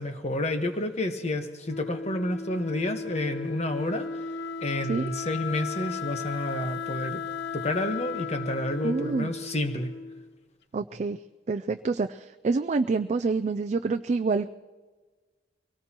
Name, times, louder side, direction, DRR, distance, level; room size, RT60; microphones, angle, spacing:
voice 1, 0.0-4.3 4.6-7.2 7.5-9.9, left 1 dB, 40° left, 6 dB, 1.3 m, -30 dB
Wind instrument woodwind instrument, 1.6-10.4, left 5 dB, 65° left, 0.4 m, -36 dB
voice 2, 8.8-9.3 10.7-11.2 11.5-14.5, right 4 dB, 40° right, 8 dB, 0.4 m, -27 dB
23.5 x 18.0 x 3.0 m, 1.3 s
head